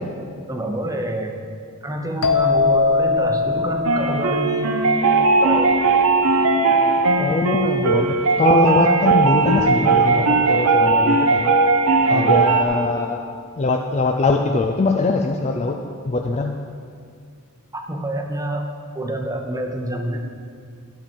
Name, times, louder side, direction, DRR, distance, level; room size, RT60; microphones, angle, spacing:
voice 1, 0.5-1.3 1.8-4.7 5.4-5.8 12.1-12.4 17.7-18.7 18.9-20.2, right 1 dB, 15° right, 3 dB, 0.8 m, -27 dB
sound 1, 2.2-5.8, left 4 dB, 85° left, 0.7 m, -22 dB
sound 2, 3.8-12.6, right 3 dB, 85° right, 0.8 m, -18 dB
voice 2, 7.2-11.5 12.1-13.2 13.6-15.8 16.1-16.6, left 3 dB, 30° left, 3 dB, 0.4 m, -21 dB
11.5 x 7.2 x 4.5 m, 2.2 s
head